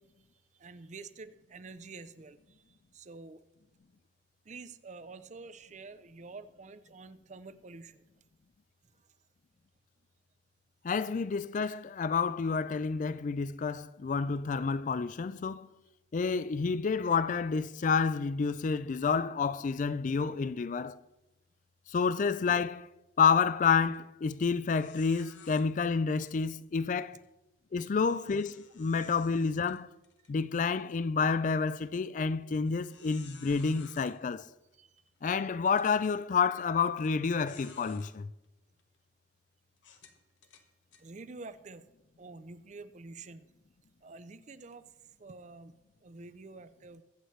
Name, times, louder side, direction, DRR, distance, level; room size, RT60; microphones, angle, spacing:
voice 1, 0.5-3.4 4.5-8.0 33.6-33.7 34.8-34.9 41.0-41.9 42.2-43.5 44.0-44.8 45.2-45.7 46.0-47.0, right 3 dB, 40° right, 0.5 m, -48 dB
voice 2, 10.8-15.7 16.1-21.0 21.9-22.9 23.2-27.2 27.7-29.9 30.3-34.5 35.2-38.3, left 5 dB, 45° left, 0.4 m, -29 dB
sound 1, 23.7-24.0 24.3-24.4 24.8-25.6 28.0-30.3 30.8-30.9 31.6-31.7 32.6-34.1 35.0-35.1 35.6-35.9 37.0-37.1 37.5-38.1 38.8-39.0 39.8-41.0, left 6 dB, 85° left, 1.3 m, -55 dB
22.0 x 8.1 x 3.2 m
head